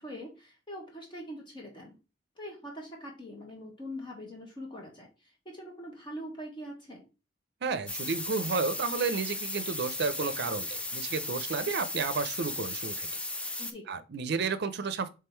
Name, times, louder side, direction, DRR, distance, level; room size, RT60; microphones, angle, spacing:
voice 1, 0.0-1.9 2.4-7.0 13.6-13.8, equal, 25° left, 1.0 m, -43 dB
voice 2, 7.6-13.1 13.9-15.1, right 4 dB, 60° right, 0.5 m, -32 dB
sound 1, 7.9-13.7, left 2 dB, 5° left, 0.3 m, -36 dB
3.6 x 3.3 x 4.4 m
head